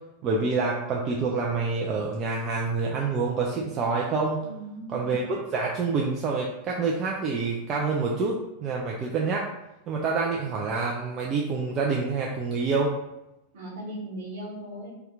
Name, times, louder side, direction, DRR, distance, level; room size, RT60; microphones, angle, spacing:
voice 1, 0.2-4.4 4.9-9.5 9.9-12.9, right 4 dB, 30° right, -2 dB, 0.4 m, -27 dB
voice 2, 4.4-5.0 13.5-14.9, right 1 dB, 55° right, -3 dB, 0.9 m, -38 dB
2.7 x 2.2 x 3.5 m, 0.94 s
figure-of-eight pair, 90°, 0 cm